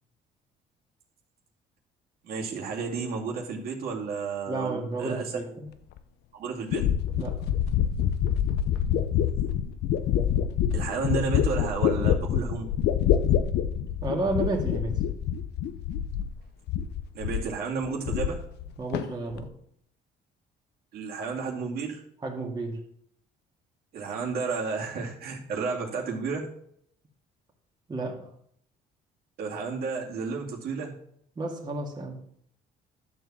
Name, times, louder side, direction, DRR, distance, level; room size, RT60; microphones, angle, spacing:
voice 1, 2.2-5.3 6.3-6.8 10.7-12.7 17.1-18.4 20.9-22.0 23.9-26.5 29.4-31.0, right 4 dB, 65° right, -2 dB, 2.4 m, -32 dB
voice 2, 4.5-5.7 7.2-7.3 14.0-14.9 18.8-19.5 22.2-22.8 27.9-28.3 31.4-32.2, right 2 dB, 25° right, -1 dB, 2.2 m, -31 dB
sound 1, 6.0-6.1 6.7-16.4 16.7-17.5 17.8-18.7 18.9-19.5, left 9 dB, 75° left, 0.8 m, -26 dB
12.0 x 4.6 x 7.3 m, 0.67 s
cardioid pair, 110°, 17 cm